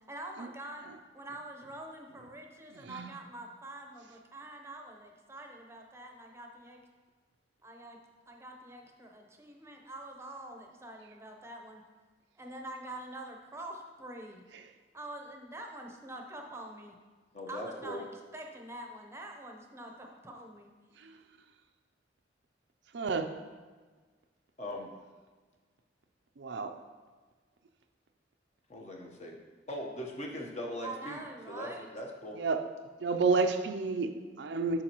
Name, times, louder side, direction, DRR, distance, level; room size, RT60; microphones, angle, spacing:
voice 1, 0.1-0.8 1.1-6.8 7.6-8.0 8.3-11.8 12.3-14.4 14.9-16.9 17.5-20.7 30.8-31.9, right 1 dB, 15° right, 2 dB, 0.8 m, -45 dB
voice 2, 17.3-18.0 24.6-24.9 28.7-29.4 29.7-31.2 31.5-32.4, left 1 dB, 40° left, 0 dB, 1.0 m, -40 dB
voice 3, 22.9-23.3 26.4-26.7 32.4-32.7 33.0-34.1 34.5-34.8, right 4 dB, 65° right, 6 dB, 0.5 m, -30 dB
8.7 x 6.3 x 3.0 m, 1.4 s
head